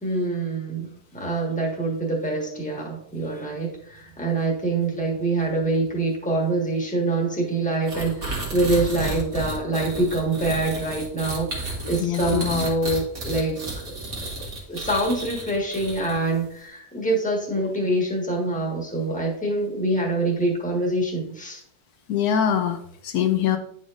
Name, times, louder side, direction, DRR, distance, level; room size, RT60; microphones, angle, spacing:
voice 1, 0.0-13.6 14.7-21.6, right 2 dB, 5° left, -1 dB, 1.3 m, -25 dB
sound 1, 7.9-16.4, right 2 dB, 70° right, 2.1 m, -32 dB
voice 2, 12.0-12.6 22.1-23.6, left 9 dB, 80° left, 6 dB, 1.1 m, -23 dB
9.5 x 5.1 x 2.5 m, 0.67 s
omnidirectional pair, 1.6 m